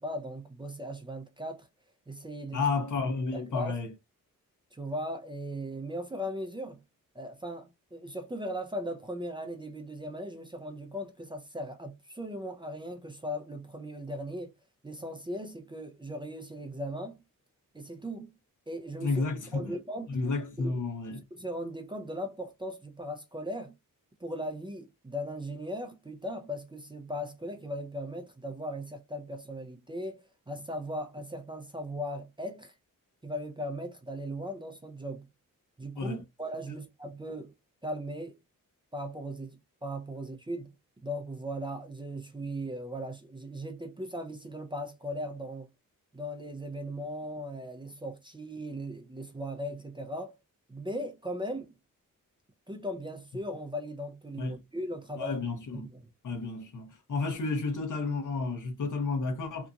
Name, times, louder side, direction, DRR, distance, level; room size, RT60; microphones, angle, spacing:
voice 1, 0.0-1.7 2.1-2.6 3.3-3.8 4.7-6.8 7.1-14.5 14.8-17.2 17.7-18.3 18.7-19.2 19.5-20.2 20.6-20.7 21.3-23.7 24.2-32.7 33.2-35.3 35.8-37.5 37.8-38.4 38.9-40.7 41.0-45.7 46.1-50.3 50.7-51.7 52.7-55.5 55.7-56.0, equal, 15° right, 0.5 m, -38 dB
voice 2, 2.5-3.9 19.0-19.8 20.1-21.2 36.0-36.2 54.4-54.6 55.2-55.9 56.2-59.7, left 3 dB, 60° left, 0.9 m, -31 dB
2.8 x 2.5 x 2.3 m
cardioid pair, 85°, 34 cm